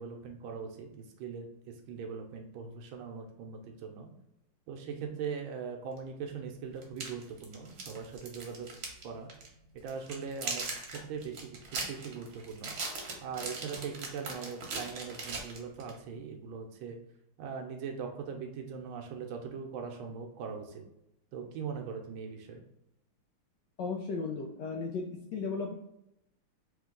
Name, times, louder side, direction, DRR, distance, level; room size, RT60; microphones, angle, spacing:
voice 1, 0.0-4.1 4.7-8.7 9.0-9.3 9.8-12.7 13.2-17.0 17.4-20.8 21.3-22.6, right 6 dB, 75° right, 3 dB, 1.3 m, -41 dB
sound 1, 6.0-6.1 6.8-9.0 9.3-9.5 9.9-16.0, right 3 dB, 55° right, 1.2 m, -39 dB
voice 2, 23.8-25.7, left 4 dB, 80° left, 1 dB, 1.0 m, -35 dB
3.5 x 3.1 x 3.7 m, 0.83 s
omnidirectional pair, 2.3 m